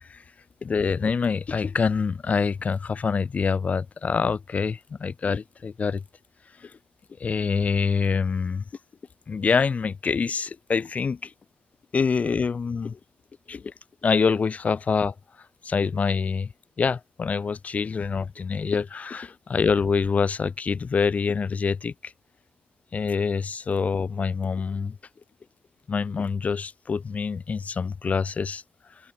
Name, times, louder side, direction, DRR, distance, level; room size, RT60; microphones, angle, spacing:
voice 1, 0.6-6.0 6.6-6.7 7.2-8.6 9.3-11.3 11.9-13.0 13.5-13.7 14.0-15.1 15.6-16.5 16.8-22.1 22.9-25.0 25.9-28.6, left 5 dB, 45° left, 1.9 m, -25 dB
cardioid pair, 85°, 3 cm